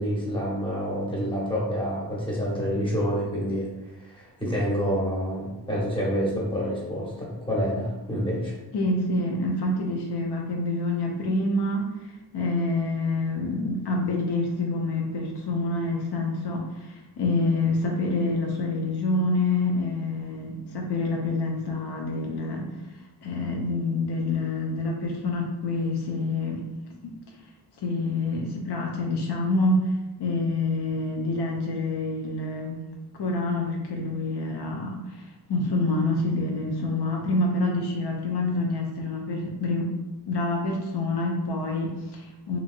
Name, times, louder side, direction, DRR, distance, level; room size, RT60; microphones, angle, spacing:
voice 1, 0.0-8.6, equal, 15° left, -5 dB, 0.9 m, -28 dB
voice 2, 8.7-22.7 23.2-26.7 27.0-27.1 27.8-29.9 30.2-32.8 33.2-40.0 40.3-42.6, left 2 dB, 75° left, -1 dB, 0.6 m, -27 dB
2.9 x 2.6 x 2.5 m, 1.0 s
wide cardioid pair, 90°, 40 cm